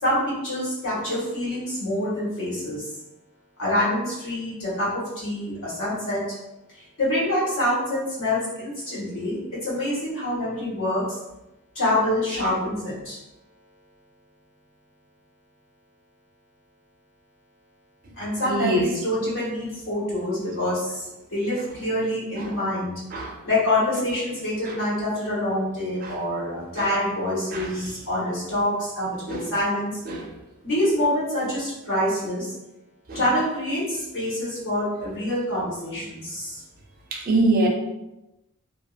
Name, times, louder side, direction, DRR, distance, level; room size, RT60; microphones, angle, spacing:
voice 1, 0.0-2.9 3.6-6.3 6.7-11.2 11.7-13.2 18.2-22.9 23.4-30.0 30.6-32.5 33.1-36.6, left 1 dB, 65° left, -7 dB, 1.5 m, -26 dB
voice 2, 18.5-18.9 22.4-22.6 23.1-23.4 24.6-24.8 26.0-26.2 26.7-26.9 27.5-27.9 29.3-29.5 30.1-30.3 33.1-33.2 37.1-37.7, right 2 dB, 40° right, 1 dB, 0.4 m, -25 dB
2.8 x 2.7 x 2.4 m, 0.95 s
head